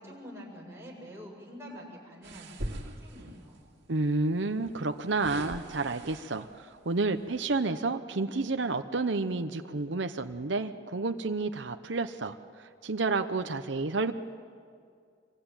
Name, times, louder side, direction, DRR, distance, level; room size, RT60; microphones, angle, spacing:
voice 1, 0.0-2.6 3.0-3.6, equal, 15° right, -3 dB, 7.0 m, -46 dB
sound 1, 2.2-3.6 4.6-6.6 7.2-7.4, right 1 dB, 70° right, 2.6 m, -42 dB
voice 2, 3.9-14.1, right 3 dB, 85° right, 7 dB, 0.9 m, -30 dB
26.5 x 23.5 x 9.1 m, 2.3 s
head